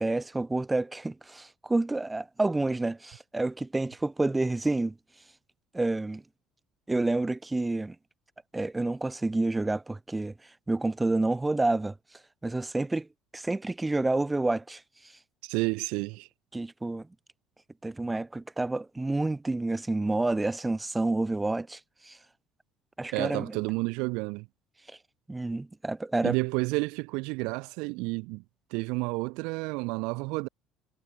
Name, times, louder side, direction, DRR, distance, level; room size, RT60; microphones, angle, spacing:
voice 1, 0.0-5.0 5.7-6.2 6.9-8.0 8.5-10.3 10.7-11.9 12.4-13.1 13.3-14.8 16.5-17.1 17.8-22.2 23.0-23.6 25.3-26.4, right 2 dB, 10° right, 4.4 m, -29 dB
voice 2, 15.4-16.3 23.1-24.5 26.2-28.4 28.7-30.5, right 27 dB, 85° right, 2.2 m, -30 dB
cardioid pair, 115°, 0 cm